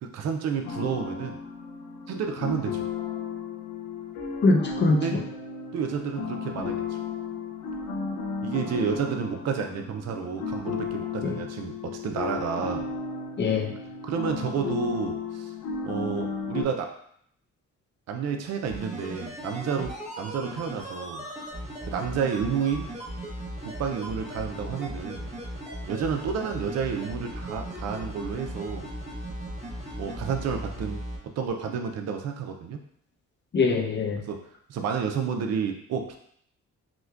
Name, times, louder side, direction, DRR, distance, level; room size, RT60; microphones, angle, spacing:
voice 1, 0.0-1.4 2.1-2.8 4.9-5.2 5.7-7.0 8.4-12.8 14.0-15.5 15.8-17.0 18.1-21.2 21.9-23.0 23.6-25.3 25.9-28.9 30.0-32.8 34.3-36.2, right 6 dB, 60° right, 4 dB, 0.5 m, -30 dB
sound 1, 0.6-16.6, left 5 dB, 80° left, 0.8 m, -34 dB
voice 2, 4.4-5.2 11.2-11.4 13.4-13.7 33.5-34.2, left 3 dB, 35° left, 2 dB, 0.7 m, -23 dB
sound 2, 18.6-31.2 31.5-31.6, right 1 dB, 20° right, 1.0 m, -37 dB
5.9 x 2.2 x 2.4 m, 0.66 s
cardioid pair, 90°, 30 cm